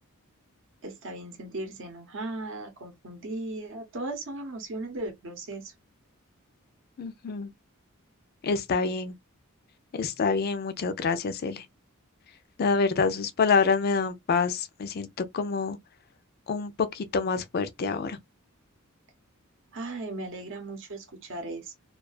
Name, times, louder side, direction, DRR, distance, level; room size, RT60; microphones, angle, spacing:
voice 1, 0.8-5.7 19.7-21.7, right 2 dB, 60° right, 0.7 m, -37 dB
voice 2, 7.0-7.5 8.4-9.1 9.9-11.6 12.6-15.8 16.5-18.2, left 5 dB, 45° left, 0.4 m, -27 dB
2.3 x 2.2 x 2.4 m
head